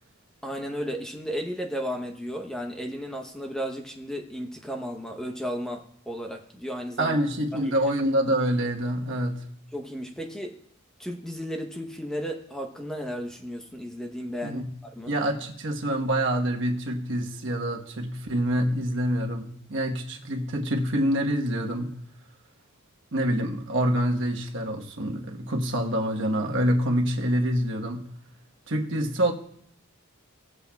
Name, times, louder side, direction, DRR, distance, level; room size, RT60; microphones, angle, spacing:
voice 1, 0.4-7.2 7.5-7.8 9.7-10.6 11.0-15.1, equal, 5° left, 0.8 m, -34 dB
voice 2, 7.0-9.4 14.4-14.7 15.1-22.0 23.1-28.1 28.7-29.3, equal, 60° right, 1.2 m, -26 dB
18.5 x 8.1 x 2.3 m
head